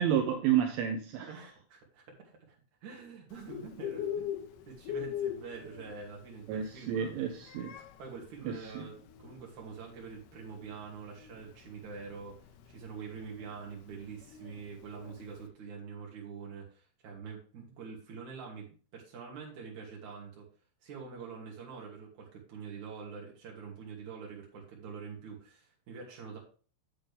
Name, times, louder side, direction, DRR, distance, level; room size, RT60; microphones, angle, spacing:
voice 1, 0.0-1.3 6.5-7.7 8.5-8.6, right 9 dB, 80° right, 6 dB, 3.0 m, -30 dB
voice 2, 1.3-2.6 2.8-4.4 4.7-7.2 8.0-20.5 20.8-26.4, right 5 dB, 45° right, -3 dB, 3.4 m, -45 dB
Bird, 3.3-15.4, left 9 dB, 85° left, 2.3 m, -42 dB
8.8 x 7.4 x 3.5 m, 0.39 s
omnidirectional pair, 5.7 m